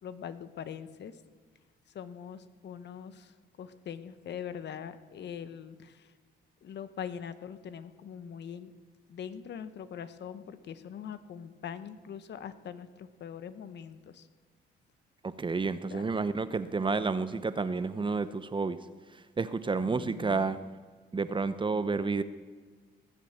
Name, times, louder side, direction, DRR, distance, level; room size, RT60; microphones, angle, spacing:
voice 1, 0.0-1.2 1.9-6.1 6.6-8.7 9.1-14.3 15.9-16.0 19.8-20.5, left 8 dB, 60° left, 12 dB, 0.9 m, -42 dB
voice 2, 15.2-18.8 19.4-20.6 21.1-22.2, right 4 dB, 25° right, 13 dB, 0.7 m, -30 dB
19.0 x 7.4 x 8.0 m, 1.5 s
cardioid pair, 90°, 20 cm